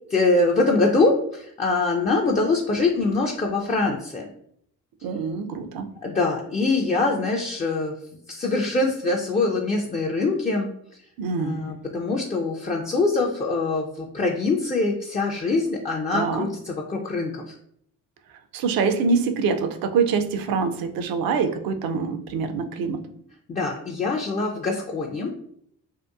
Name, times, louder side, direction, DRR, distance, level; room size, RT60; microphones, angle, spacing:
voice 1, 0.1-4.3 6.0-7.9 8.3-10.7 11.4-17.6 23.5-25.3, left 3 dB, 20° left, -1 dB, 0.4 m, -23 dB
voice 2, 5.0-5.9 11.2-11.6 16.1-16.4 18.5-23.0, right 5 dB, 60° right, 7 dB, 0.5 m, -25 dB
2.7 x 2.1 x 2.3 m, 0.67 s
hypercardioid pair, 45°, 40 cm